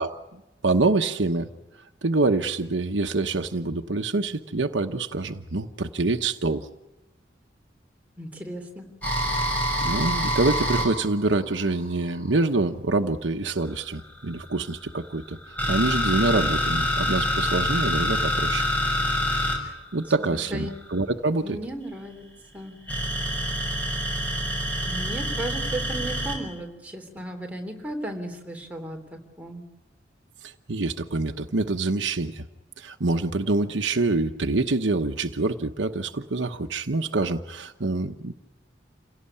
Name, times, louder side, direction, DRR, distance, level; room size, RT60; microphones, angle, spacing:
voice 1, 0.0-1.5 2.0-6.7 9.8-18.7 19.9-21.6 30.4-32.4 32.8-38.3, right 3 dB, 90° right, 5 dB, 1.1 m, -26 dB
voice 2, 8.2-8.9 19.6-19.7 20.2-20.7 21.4-22.2 22.5-22.7 24.8-29.0 29.4-29.7, right 1 dB, 10° right, 2 dB, 3.4 m, -35 dB
sound 1, 9.0-12.4 13.6-21.0 22.9-26.4, left 1 dB, 10° left, 6.8 m, -26 dB
28.0 x 17.5 x 9.9 m, 1.0 s
head